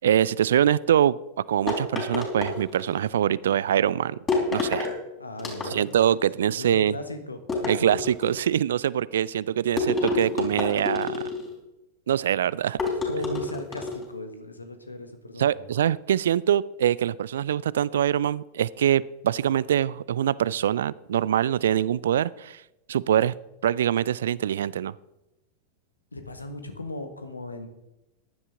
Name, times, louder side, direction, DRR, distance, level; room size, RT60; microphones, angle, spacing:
voice 1, 0.0-1.2 1.5-4.2 4.5-4.9 5.7-6.9 7.7-11.2 12.1-12.8 15.4-22.6 22.9-23.3 23.6-24.9, right 10 dB, 60° right, 21 dB, 0.4 m, -24 dB
sound 1, 1.7-3.1 4.3-4.9 5.4-6.1 7.5-8.4 9.8-11.5 12.8-14.1, left 3 dB, 20° left, 3.6 m, -29 dB
voice 2, 5.2-5.9 6.5-7.4 13.0-15.5 26.1-27.7, left 2 dB, 80° left, 8 dB, 1.5 m, -37 dB
15.0 x 11.0 x 3.7 m, 0.92 s
figure-of-eight pair, 90°, 0 cm